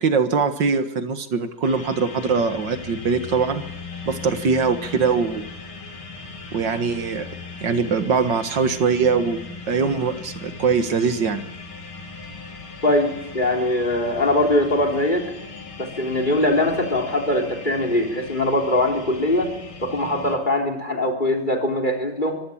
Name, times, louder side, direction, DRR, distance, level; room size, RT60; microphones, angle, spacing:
voice 1, 0.0-3.6 4.1-5.5 6.5-7.3 7.6-9.4 9.7-11.4, right 5 dB, 55° right, 9 dB, 2.1 m, -22 dB
sound 1, 1.6-20.4, left 4 dB, 85° left, 3.7 m, -38 dB
voice 2, 12.8-15.3 15.8-19.5 19.8-22.4, left 1 dB, 20° left, 6 dB, 3.6 m, -22 dB
24.5 x 15.5 x 8.6 m, 0.84 s
omnidirectional pair, 2.4 m